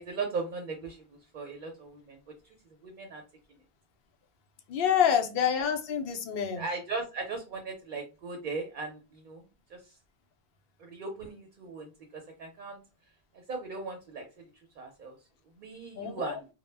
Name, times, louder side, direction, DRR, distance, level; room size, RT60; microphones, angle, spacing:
voice 1, 0.0-2.2 2.8-3.2 6.5-9.4 9.7-9.9 10.8-12.8 13.5-14.3 14.8-15.1 15.6-16.5, right 4 dB, 55° right, 0.6 m, -38 dB
voice 2, 4.7-6.6 15.9-16.4, left 8 dB, 70° left, 0.7 m, -27 dB
2.1 x 2.0 x 3.2 m
omnidirectional pair, 1.1 m